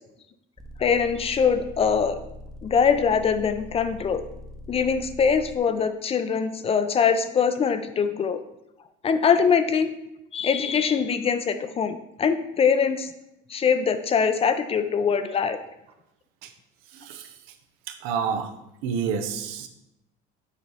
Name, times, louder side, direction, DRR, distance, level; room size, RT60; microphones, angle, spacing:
sound 1, 0.6-5.6, left 1 dB, ahead, 0.8 m, -42 dB
voice 1, 0.8-2.2 2.6-4.2 4.7-8.4 9.0-9.9 10.3-13.1 13.5-15.6, left 6 dB, 30° left, 10 dB, 0.5 m, -23 dB
voice 2, 16.9-17.3 17.9-18.5 18.8-19.7, right 6 dB, 85° right, 8 dB, 0.8 m, -29 dB
7.4 x 4.8 x 4.1 m, 0.86 s
cardioid pair, 125°, 21 cm